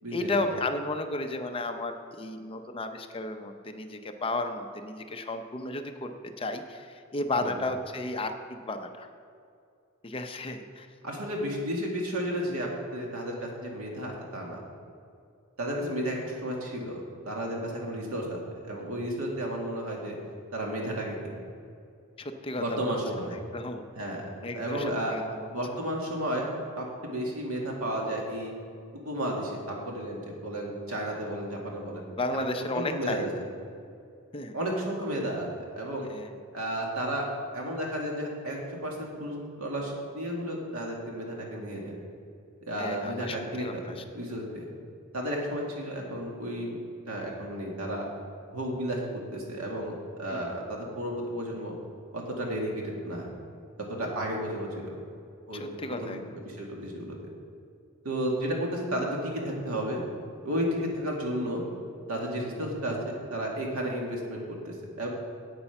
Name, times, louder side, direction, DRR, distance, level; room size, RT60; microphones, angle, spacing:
voice 1, 0.1-9.1 10.0-10.9 22.2-23.0 23.3-23.8 24.4-25.5 32.2-33.3 34.3-34.5 36.1-36.3 42.8-44.0 50.3-50.5 55.6-56.2, left 2 dB, 25° left, 6 dB, 0.6 m, -33 dB
voice 2, 11.0-14.6 15.6-20.2 20.5-21.4 22.6-23.4 24.0-24.3 24.5-25.2 25.4-26.5 26.8-28.5 29.0-32.0 32.3-32.5 32.7-33.3 34.5-35.5 35.7-36.1 36.5-37.3 37.5-41.9 42.6-44.6 45.1-46.8 47.1-48.1 48.5-51.7 52.1-53.3 53.9-54.9 55.5-55.7 56.0-57.2 58.0-60.0 60.4-61.6 62.1-65.1, right 1 dB, 85° right, -1 dB, 2.1 m, -33 dB
8.8 x 8.5 x 5.8 m, 2.4 s
head